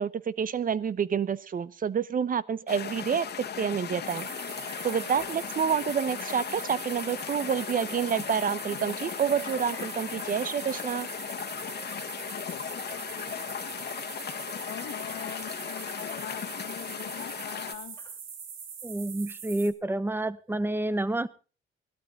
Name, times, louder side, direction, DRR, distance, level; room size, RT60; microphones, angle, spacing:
voice 1, 0.0-3.3 3.6-4.3 4.8-11.1, right 7 dB, 45° right, 17 dB, 0.9 m, -28 dB
sound 1, 2.7-17.7, left 8 dB, 55° left, 1.6 m, -37 dB
sound 2, 4.0-19.7, right 7 dB, 85° right, 2.8 m, -42 dB
sound 3, 4.2-5.5 6.9-7.5 7.9-8.4 9.3-10.7 11.7-13.4 14.6-16.4 17.3-17.6 18.0-18.2, left 3 dB, 10° left, 2.3 m, -51 dB
voice 2, 12.4-13.1 14.6-18.0, left 11 dB, 85° left, 4 dB, 1.7 m, -42 dB
voice 3, 18.8-21.3, right 1 dB, 10° right, 15 dB, 1.0 m, -29 dB
18.0 x 12.5 x 4.2 m, 0.36 s
cardioid pair, 90°, 20 cm